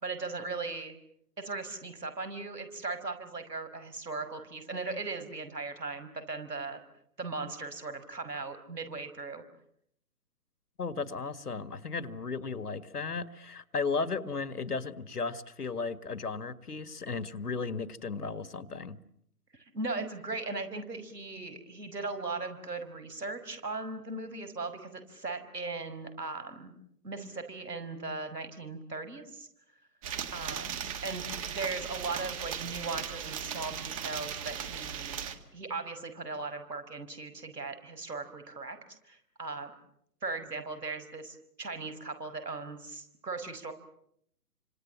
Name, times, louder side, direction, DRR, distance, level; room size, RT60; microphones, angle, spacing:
voice 1, 0.0-0.9 1.4-6.8 7.2-9.4 19.5-26.7 27.0-29.5 30.3-35.2 35.5-38.8 39.0-39.7 40.2-43.7, right 3 dB, 80° right, 8 dB, 5.6 m, -38 dB
voice 2, 10.8-19.0, left 4 dB, 70° left, 13 dB, 1.9 m, -35 dB
sound 1, 30.0-35.4, right 8 dB, 20° right, 1.6 m, -37 dB
30.0 x 26.5 x 7.5 m, 0.71 s
figure-of-eight pair, 145°, 48 cm